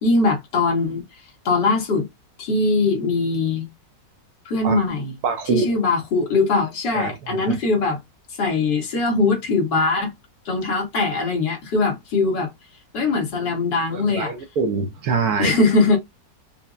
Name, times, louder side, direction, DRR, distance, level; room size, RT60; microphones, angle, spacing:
voice 1, 0.0-1.0 1.5-2.1 2.4-3.7 4.5-5.2 5.5-8.0 8.4-10.1 10.5-12.5 12.9-14.3 15.4-16.0, left 3 dB, 75° left, 2.1 m, -21 dB
voice 2, 5.2-5.7 6.9-7.1 7.5-7.6 13.9-15.6, right 5 dB, 70° right, 1.1 m, -24 dB
5.5 x 2.0 x 2.3 m
omnidirectional pair, 1.9 m